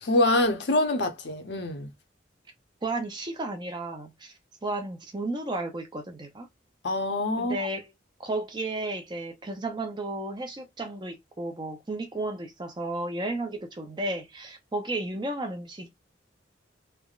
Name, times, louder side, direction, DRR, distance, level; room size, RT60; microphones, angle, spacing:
voice 1, 0.0-1.9 6.8-7.7, left 2 dB, 65° left, 0.7 m, -25 dB
voice 2, 2.8-4.3 4.6-6.5 7.4-7.9 8.2-15.9, right 2 dB, 25° right, 0.6 m, -33 dB
3.3 x 2.1 x 2.4 m
head